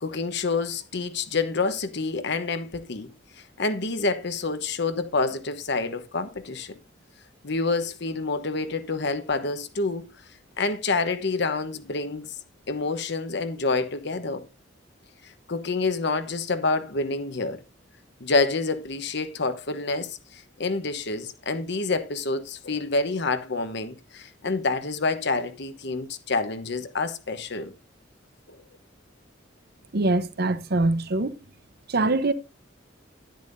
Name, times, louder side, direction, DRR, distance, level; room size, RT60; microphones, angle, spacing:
voice 1, 0.0-3.1 3.6-6.8 7.4-10.0 10.6-12.3 12.7-14.4 15.5-17.6 18.2-27.7 28.5-28.6, left 3 dB, 60° left, 1.0 m, -27 dB
voice 2, 29.9-31.3 31.9-32.3, right 2 dB, 55° right, 0.8 m, -23 dB
10.5 x 10.5 x 2.6 m
head